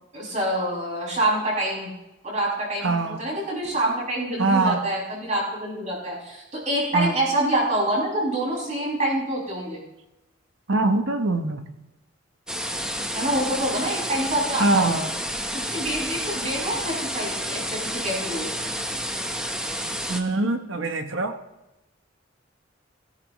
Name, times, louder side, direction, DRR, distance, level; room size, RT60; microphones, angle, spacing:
voice 1, 0.1-1.9 2.2-9.8 13.1-15.1 15.5-18.5, right 1 dB, 40° right, 6.2 m, -26 dB
voice 2, 2.8-3.2 4.4-4.9 6.9-7.1 10.7-11.7 14.6-15.1 20.1-21.3, right 2 dB, 70° right, 1.0 m, -23 dB
sound 1, 12.5-20.2, equal, 5° right, 1.1 m, -30 dB
17.0 x 16.5 x 3.1 m
head